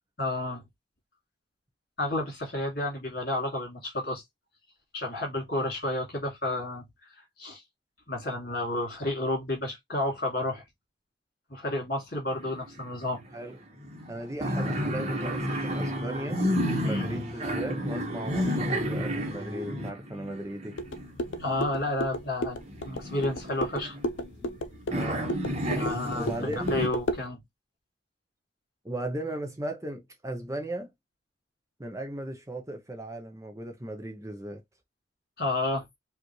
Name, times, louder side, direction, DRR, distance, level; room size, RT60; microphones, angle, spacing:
voice 1, 0.2-0.6 2.0-4.2 4.9-6.8 7.1-7.6 8.1-10.6 11.5-13.2 16.8-17.1 21.4-22.6 22.8-24.0 25.7-27.4 35.4-35.9, left 1 dB, 55° left, 2.5 m, -31 dB
sound 1, 12.3-13.1 13.3-13.4 13.8-22.0 22.6-24.6 24.9-26.9, equal, 35° right, 1.2 m, -31 dB
voice 2, 14.1-16.4 16.8-20.8 24.9-25.3 26.1-26.8 28.8-30.9 31.8-34.6, right 1 dB, 15° right, 0.7 m, -37 dB
sound 2, 20.8-27.3, equal, 80° left, 0.6 m, -34 dB
5.0 x 2.6 x 3.0 m
head